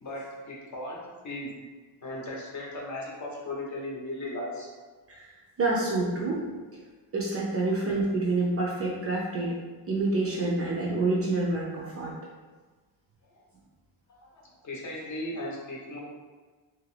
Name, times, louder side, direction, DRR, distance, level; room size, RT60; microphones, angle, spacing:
voice 1, 0.0-1.5 2.0-4.7 13.3-13.4 14.1-16.0, left 1 dB, 40° left, -3 dB, 0.7 m, -37 dB
voice 2, 5.6-6.4 7.1-9.6 9.9-12.1, right 2 dB, 35° right, -4 dB, 0.4 m, -27 dB
2.7 x 2.4 x 3.2 m, 1.4 s
cardioid pair, 140°, 46 cm